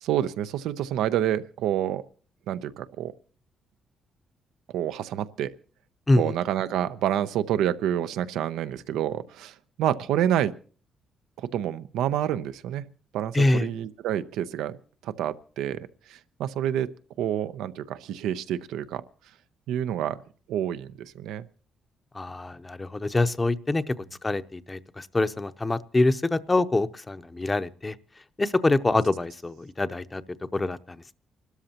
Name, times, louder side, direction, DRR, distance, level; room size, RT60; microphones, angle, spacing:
voice 1, 0.0-2.0 2.5-3.1 4.7-5.5 6.2-10.5 11.4-12.8 13.1-14.7 15.0-15.8 16.1-16.9 17.2-19.0 19.7-20.2 20.5-21.4, right 11 dB, 90° right, 12 dB, 0.6 m, -28 dB
voice 2, 13.3-13.7 22.1-23.9 24.2-28.0 28.4-30.2 30.5-31.1, left 2 dB, 20° left, 11 dB, 0.7 m, -25 dB
29.5 x 13.0 x 2.9 m, 0.40 s
cardioid pair, 90°, 0 cm